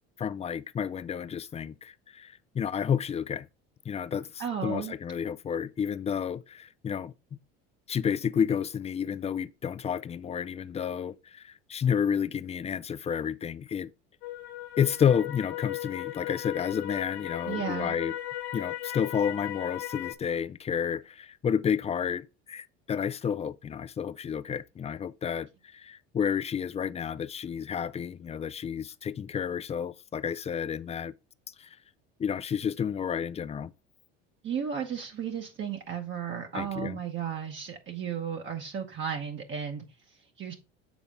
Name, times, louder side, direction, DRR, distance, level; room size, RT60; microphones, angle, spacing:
voice 1, 0.2-3.5 3.9-7.1 7.9-13.9 14.8-18.1 18.5-31.1 31.5-31.7 32.2-33.7 36.5-37.0, left 7 dB, 20° left, 0.3 m, -31 dB
voice 2, 4.4-4.9 17.4-18.0 34.4-40.5, right 7 dB, 40° right, 1.0 m, -34 dB
sound 1, 14.2-20.1, left 13 dB, 85° left, 0.7 m, -37 dB
7.2 x 4.0 x 3.6 m
supercardioid pair, 85°, 31 cm